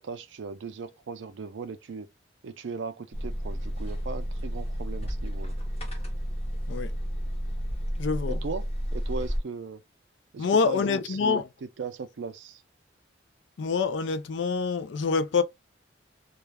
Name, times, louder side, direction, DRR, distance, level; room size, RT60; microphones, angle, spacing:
voice 1, 0.0-2.1 2.4-5.5 8.3-9.8 10.3-12.6, right 4 dB, 75° right, 0.4 m, -38 dB
sound 1, 3.1-9.4, equal, 35° left, 0.8 m, -31 dB
voice 2, 8.0-8.4 10.4-11.4 13.6-15.4, left 5 dB, 70° left, 0.4 m, -26 dB
2.4 x 2.2 x 3.2 m
head